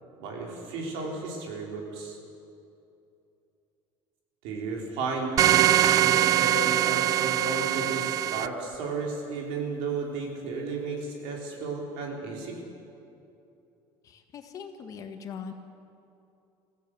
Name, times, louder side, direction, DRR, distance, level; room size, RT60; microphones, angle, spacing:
voice 1, 0.2-2.2 4.4-12.6, right 3 dB, 80° right, 0 dB, 4.7 m, -33 dB
sound 1, 5.4-8.5, right 12 dB, 35° right, 0.4 m, -22 dB
voice 2, 14.0-15.5, left 6 dB, 35° left, 6 dB, 1.6 m, -41 dB
21.5 x 15.5 x 7.9 m, 2.7 s
cardioid pair, 160°, 10 cm